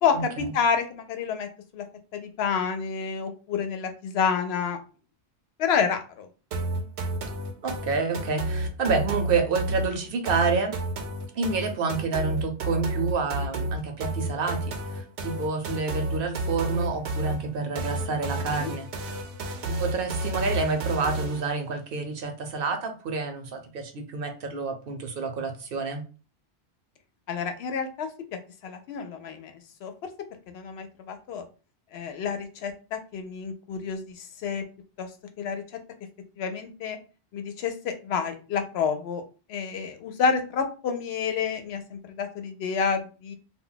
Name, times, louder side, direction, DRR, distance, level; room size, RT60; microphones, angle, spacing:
voice 1, 0.0-1.5 1.7-1.8 2.1-4.8 5.6-6.3 18.3-18.7 27.3-29.9 30.5-31.4 31.9-34.6 35.0-35.1 35.4-35.6 36.4-37.0 37.3-39.2 39.5-43.4, left 6 dB, 75° left, 6 dB, 0.8 m, -29 dB
sound 1, 6.5-21.5, right 1 dB, 85° right, 0.9 m, -31 dB
voice 2, 7.6-10.7 11.3-14.6 15.0-18.9 19.7-26.0, right 4 dB, 65° right, 5 dB, 0.7 m, -28 dB
2.2 x 2.2 x 3.8 m, 0.34 s
omnidirectional pair, 1.1 m